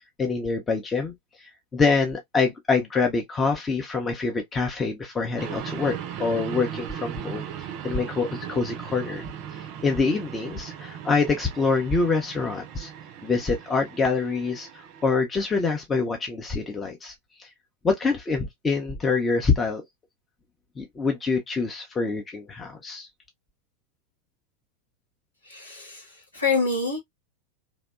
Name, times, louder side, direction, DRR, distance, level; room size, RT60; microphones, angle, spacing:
voice 1, 0.2-1.1 1.4-5.9 6.2-9.2 9.8-12.9 13.2-14.7 15.0-17.1 17.4-17.5 17.8-19.8 20.8-23.1, left 4 dB, 15° left, 0.5 m, -25 dB
sound 1, 5.4-15.0, right 9 dB, 40° right, 0.4 m, -38 dB
voice 2, 25.4-27.0, left 4 dB, 75° left, 1.4 m, -27 dB
2.7 x 2.1 x 2.3 m
figure-of-eight pair, 90°, 0 cm